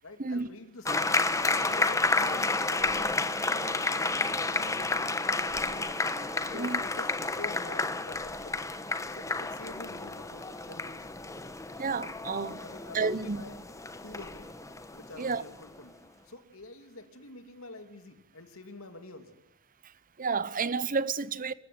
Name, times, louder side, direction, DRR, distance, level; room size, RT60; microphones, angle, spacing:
voice 1, 0.0-1.2 1.6-3.2 3.5-5.9 6.4-8.6 9.1-11.1 12.6-13.6 14.0-14.5 14.9-16.0 16.2-19.4, left 2 dB, 80° left, 2.7 m, -47 dB
sound 1, 0.8-15.8, left 3 dB, 15° left, 1.3 m, -31 dB
sound 2, 1.3-7.2, right 2 dB, 20° right, 2.6 m, -48 dB
voice 2, 11.8-12.6 12.9-13.4 15.2-15.4 20.2-21.5, right 4 dB, 40° right, 0.9 m, -30 dB
27.0 x 15.0 x 9.4 m
head